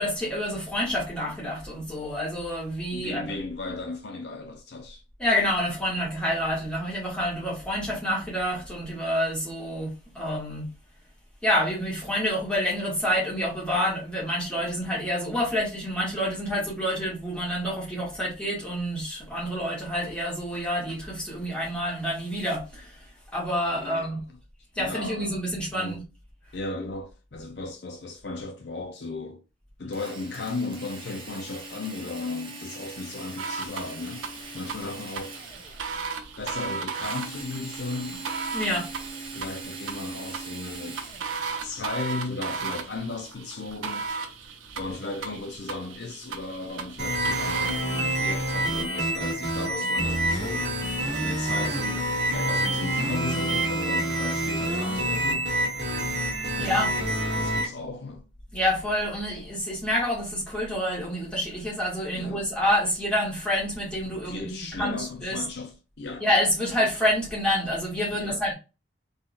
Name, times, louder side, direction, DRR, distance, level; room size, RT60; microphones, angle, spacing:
voice 1, 0.0-3.3 5.2-10.7 11.4-24.2 24.8-26.0 38.5-38.9 56.3-57.1 58.5-65.5 66.2-68.5, equal, 5° left, 1.8 m, -28 dB
voice 2, 2.9-5.0 23.7-24.2 24.8-25.4 25.7-26.0 26.5-29.4 29.8-35.4 36.4-38.3 39.3-41.0 41.6-44.1 44.7-55.5 57.0-58.3 62.1-62.4 64.0-66.3 68.1-68.4, left 3 dB, 55° left, 0.6 m, -36 dB
Drill, 29.9-36.0 37.0-41.6, right 3 dB, 25° right, 1.0 m, -41 dB
sound 1, 33.4-47.8, right 5 dB, 85° right, 0.7 m, -36 dB
sound 2, 47.0-57.7, right 1 dB, 60° right, 1.6 m, -27 dB
3.7 x 3.6 x 2.5 m
head